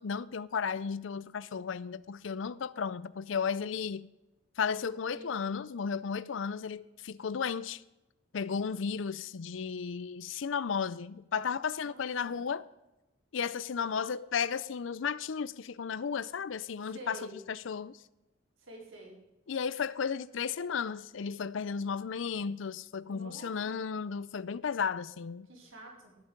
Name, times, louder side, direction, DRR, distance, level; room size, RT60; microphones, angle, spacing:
voice 1, 0.0-4.1 4.6-7.8 8.3-12.7 13.3-18.0 19.5-25.5, left 6 dB, 70° left, 0.5 m, -34 dB
voice 2, 11.8-12.3 16.8-17.3 18.6-19.2 23.0-24.0 25.5-26.2, right 1 dB, 80° right, 4.4 m, -49 dB
18.0 x 8.3 x 5.1 m
head